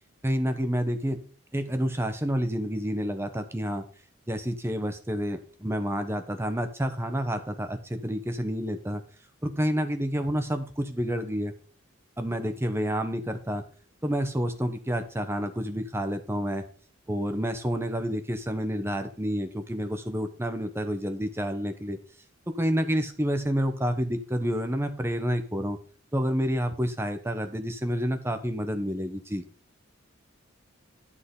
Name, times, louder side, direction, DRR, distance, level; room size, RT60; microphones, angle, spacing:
voice 1, 0.2-1.2 1.5-3.9 4.3-9.0 9.4-11.5 12.2-13.6 14.0-16.6 17.1-22.0 22.6-25.8 26.1-29.4, equal, 10° right, 7 dB, 0.9 m, -29 dB
10.5 x 6.2 x 3.8 m, 0.42 s
head